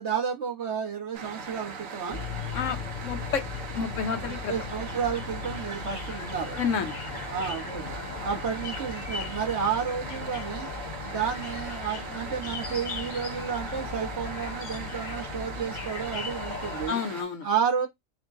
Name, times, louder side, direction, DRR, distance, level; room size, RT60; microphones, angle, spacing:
voice 1, 0.0-2.2 4.3-6.6 7.3-8.0 8.2-10.7 11.0-17.0 17.4-17.9, right 7 dB, 55° right, 1.4 m, -31 dB
sound 1, 1.1-17.2, right 4 dB, 75° right, 1.2 m, -40 dB
sound 2, 2.1-16.9, left 5 dB, 45° left, 0.6 m, -37 dB
voice 2, 2.5-3.5 3.7-4.5 6.6-7.0 16.9-17.5, left 6 dB, 70° left, 1.1 m, -30 dB
4.4 x 2.3 x 3.6 m
omnidirectional pair, 1.4 m